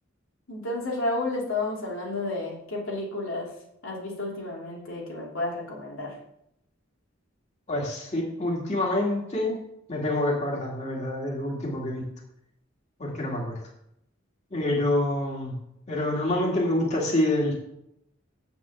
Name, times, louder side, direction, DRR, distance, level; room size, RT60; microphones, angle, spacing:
voice 1, 0.5-3.5 3.8-6.2, left 2 dB, 80° left, -3 dB, 2.9 m, -31 dB
voice 2, 7.7-9.6 9.9-12.0 13.0-13.6 14.5-15.5 15.9-17.5, left 1 dB, 35° left, -3 dB, 2.5 m, -27 dB
7.8 x 6.0 x 7.2 m, 0.77 s
head